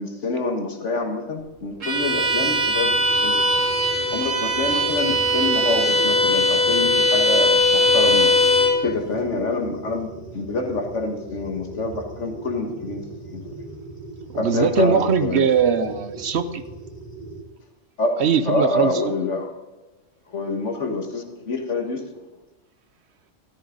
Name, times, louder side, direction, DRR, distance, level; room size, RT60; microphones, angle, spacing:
voice 1, 0.0-2.9 3.2-3.6 4.1-8.3 8.8-13.4 14.3-15.5 18.0-18.1 18.5-19.5 20.3-22.1, left 3 dB, 70° left, 3 dB, 2.0 m, -26 dB
Bowed string instrument, 1.8-8.8, left 1 dB, 85° right, 2.8 m, -20 dB
sound 1, 1.9-17.4, right 2 dB, 35° left, 2.6 m, -38 dB
voice 2, 14.3-16.6 18.2-19.0, right 6 dB, 65° right, 11 dB, 1.0 m, -21 dB
14.0 x 13.5 x 3.9 m, 1.2 s
omnidirectional pair, 1.3 m